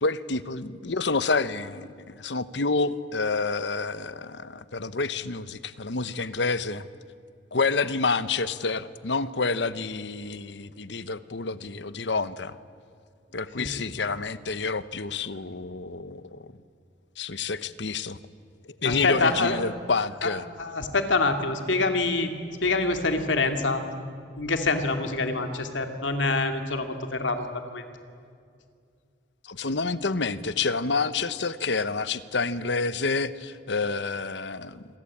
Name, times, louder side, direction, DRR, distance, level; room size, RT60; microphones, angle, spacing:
voice 1, 0.0-6.9 7.5-12.6 13.3-16.4 17.2-18.2 18.8-20.4 29.4-34.8, left 4 dB, 65° left, 14 dB, 1.0 m, -28 dB
voice 2, 18.8-19.5 20.6-22.3 22.6-23.8 24.4-27.8, left 3 dB, 90° left, 6 dB, 2.6 m, -26 dB
28.0 x 23.0 x 8.6 m, 2.3 s
head